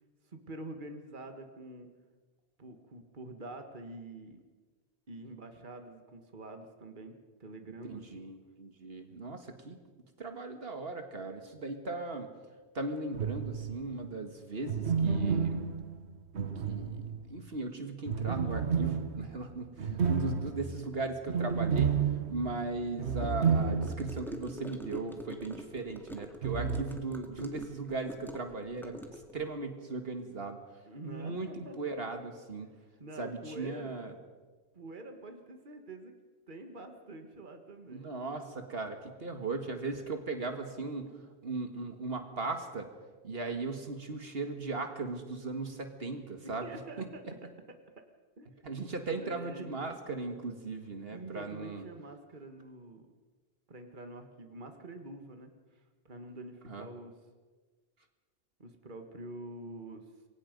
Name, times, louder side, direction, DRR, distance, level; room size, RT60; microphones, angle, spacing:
voice 1, 0.3-1.9 2.6-4.4 5.1-8.2 30.9-31.8 32.6-33.9 34.7-36.1 36.5-38.4 39.9-40.0 46.4-47.2 48.4-48.6 49.2-50.0 51.1-53.1 53.7-57.1 58.6-60.1, right 2 dB, 50° right, 5 dB, 1.9 m, -46 dB
voice 2, 7.9-9.8 10.2-12.3 12.7-15.6 16.6-21.9 22.3-30.6 31.0-32.7 33.2-34.1 37.9-41.1 41.4-42.9 43.2-46.7 47.0-47.1 48.6-51.9 56.7-56.9, right 3 dB, 65° right, 6 dB, 2.0 m, -38 dB
sound 1, 13.1-13.9 14.6-17.4 18.1-24.3 24.6-24.7 26.4-26.8, right 6 dB, 85° right, 1.4 m, -31 dB
Gurgling / Car passing by / Sink (filling or washing), 23.8-29.5, equal, ahead, 2.2 m, -45 dB
27.5 x 23.0 x 5.3 m, 1.4 s
omnidirectional pair, 1.1 m